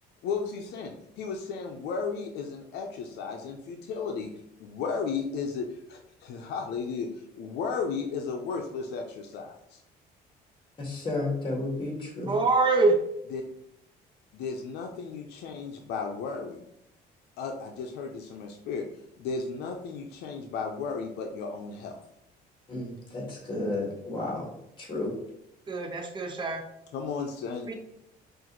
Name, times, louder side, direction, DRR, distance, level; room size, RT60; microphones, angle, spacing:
voice 1, 0.2-4.3 4.6-7.1 7.4-9.8 13.3-13.4 14.3-16.6 17.4-18.9 19.2-22.0 26.9-27.7, left 5 dB, 80° left, 3 dB, 0.6 m, -34 dB
voice 2, 10.8-12.3 22.7-24.5 24.8-25.2, left 2 dB, 30° left, -1 dB, 1.7 m, -32 dB
voice 3, 12.3-13.0 25.7-26.6 27.7-27.8, right 3 dB, 30° right, 4 dB, 0.8 m, -24 dB
6.1 x 2.5 x 3.0 m, 0.81 s
cardioid pair, 110°, 17 cm